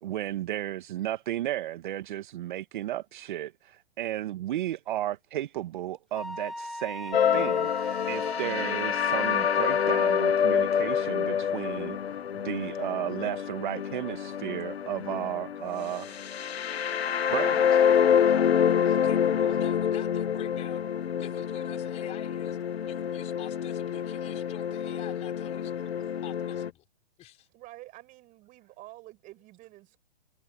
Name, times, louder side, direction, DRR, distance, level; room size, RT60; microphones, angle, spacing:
voice 1, 0.0-12.0 12.3-16.2 17.1-17.8, right 13 dB, 50° right, 1.5 m, -34 dB
Wind instrument woodwind instrument, 6.1-10.4, left 1 dB, ahead, 0.4 m, -38 dB
sound 1, 7.1-26.7, left 8 dB, 75° left, 1.7 m, -27 dB
voice 2, 18.9-20.8 21.2-22.6 22.8-25.9 26.2-26.9 27.2-27.5, left 13 dB, 20° left, 3.8 m, -47 dB
voice 3, 27.5-30.0, right 18 dB, 25° right, 7.8 m, -48 dB
hypercardioid pair, 145°, 32 cm